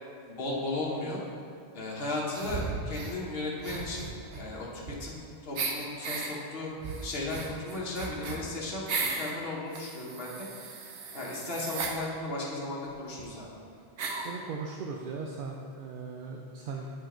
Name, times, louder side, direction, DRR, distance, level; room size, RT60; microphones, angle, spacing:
voice 1, 0.3-1.2 1.7-4.1 4.4-5.2 5.4-6.7 7.0-10.5 11.1-13.5, left 2 dB, 60° left, -4 dB, 1.3 m, -35 dB
sound 1, 2.3-3.2 3.6-5.2 5.5-6.3 6.8-9.3 9.7-12.0 12.9-13.0 13.2-13.3 14.0-14.4, right 4 dB, 85° right, 1.0 m, -36 dB
voice 2, 14.2-16.9, right 4 dB, 60° right, 0 dB, 0.6 m, -38 dB
8.0 x 5.1 x 3.7 m, 2.3 s
omnidirectional pair, 1.1 m